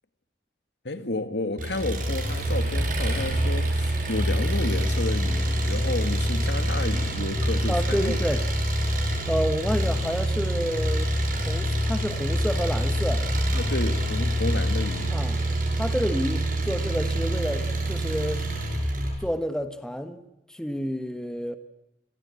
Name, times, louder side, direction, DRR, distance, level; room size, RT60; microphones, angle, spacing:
voice 1, 0.8-8.2 13.5-15.2, left 2 dB, 70° left, 2.0 m, -31 dB
Engine, 1.6-19.1, right 1 dB, 45° right, 7.8 m, -26 dB
voice 2, 7.7-8.4 9.3-13.3 15.1-15.4 15.7-18.5 19.2-20.2 20.5-21.6, equal, 5° left, 1.4 m, -29 dB
28.0 x 20.5 x 8.4 m
head